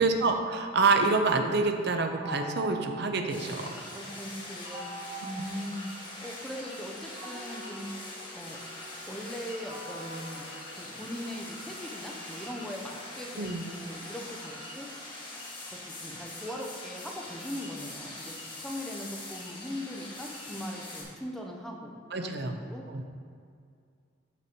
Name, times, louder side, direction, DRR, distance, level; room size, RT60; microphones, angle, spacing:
voice 1, 0.0-3.7 13.4-13.6 22.1-22.5 22.9-23.0, right 3 dB, 60° right, 5 dB, 0.7 m, -27 dB
sound 1, 2.1-4.0 4.6-6.4 7.1-11.4, right 2 dB, 25° right, 1.2 m, -45 dB
sound 2, 3.3-21.0, left 1 dB, 25° left, 1.6 m, -43 dB
voice 2, 3.8-7.9 8.3-8.6 9.1-10.5 10.7-14.9 15.7-22.8, equal, ahead, 0 dB, 0.7 m, -40 dB
6.7 x 6.0 x 4.5 m, 2.2 s
head